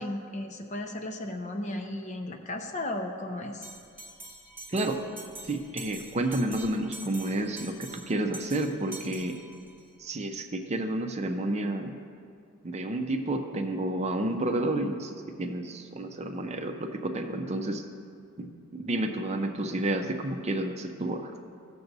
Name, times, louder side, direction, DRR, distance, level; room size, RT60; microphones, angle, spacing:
voice 1, 0.0-3.7, left 1 dB, 35° left, 5 dB, 0.6 m, -35 dB
Bell, 3.6-9.9, right 2 dB, 10° right, 0.9 m, -46 dB
voice 2, 5.4-9.4 10.0-11.9 12.6-17.9 18.4-21.3, right 1 dB, 30° right, 5 dB, 0.5 m, -30 dB
15.5 x 6.9 x 2.7 m, 2.3 s
head